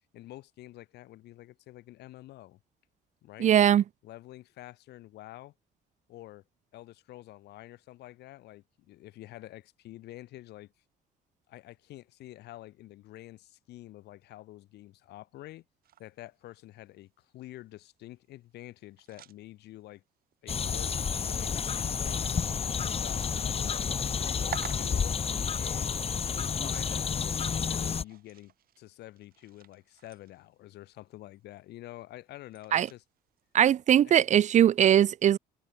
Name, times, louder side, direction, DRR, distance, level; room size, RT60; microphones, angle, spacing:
voice 1, 0.1-2.6 3.2-3.5 4.0-5.5 6.1-6.4 6.7-10.7 11.5-15.6 16.0-20.0 20.4-22.3 22.8-25.1 25.6-26.0 26.6-33.0 34.0-34.2, left 16 dB, 75° left, 5.6 m, -48 dB
voice 2, 3.4-3.8 32.7-32.9 33.5-35.4, right 10 dB, 45° right, 0.5 m, -21 dB
sound 1, 15.8-34.7, right 11 dB, 60° right, 6.6 m, -52 dB
sound 2, 20.5-28.0, left 6 dB, 35° left, 2.6 m, -30 dB
cardioid pair, 110°, 17 cm